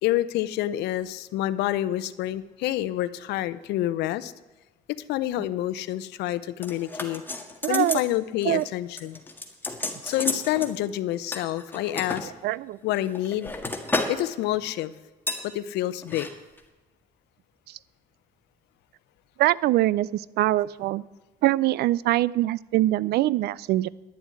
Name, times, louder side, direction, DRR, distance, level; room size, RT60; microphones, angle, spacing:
voice 1, 0.0-4.3 4.9-7.2 7.7-9.2 10.0-12.3 12.8-13.5 14.1-14.9 15.4-16.3, left 14 dB, 85° left, 16 dB, 0.6 m, -28 dB
sound 1, 6.6-8.1 8.4-8.7 9.0-10.7 11.3-12.2 12.9-14.2 14.5-14.8 15.3-15.5 16.0-16.3 16.6-16.7, left 2 dB, 10° left, 1.7 m, -32 dB
voice 2, 7.6-8.0 8.4-8.6 12.4-12.8 17.7-17.8 19.4-21.0 21.4-23.9, right 16 dB, 75° right, 22 dB, 0.4 m, -23 dB
11.0 x 7.2 x 9.6 m, 1.1 s
cardioid pair, 110°, 17 cm